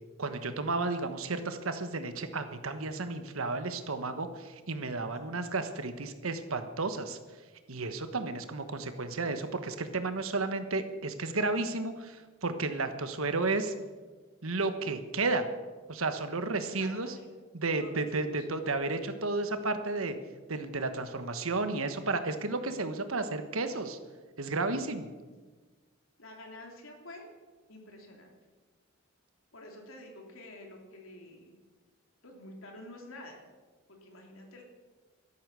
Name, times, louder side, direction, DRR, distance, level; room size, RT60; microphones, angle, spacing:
voice 1, 0.2-7.2 7.7-13.7 14.4-15.5 15.9-17.1 17.5-20.1 20.5-24.0 24.4-25.1, right 3 dB, 80° right, 9 dB, 1.3 m, -32 dB
voice 2, 16.6-17.3 17.8-18.4 26.2-27.3 27.7-28.3 29.5-31.5 32.2-33.4 33.9-34.6, left 1 dB, 75° left, 1 dB, 3.1 m, -48 dB
13.0 x 11.5 x 6.9 m, 1.3 s
head